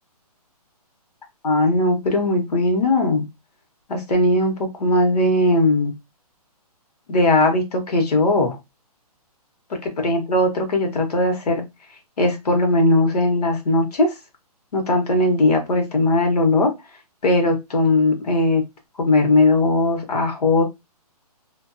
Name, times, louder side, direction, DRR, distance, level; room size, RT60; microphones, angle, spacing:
voice 1, 1.4-3.2 3.9-5.9 7.1-8.6 10.0-11.6 12.2-14.1 14.7-16.7 17.2-18.6 19.0-20.6, left 2 dB, 75° left, 1.1 m, -19 dB
2.5 x 2.3 x 2.5 m
hypercardioid pair, 180°, 20 cm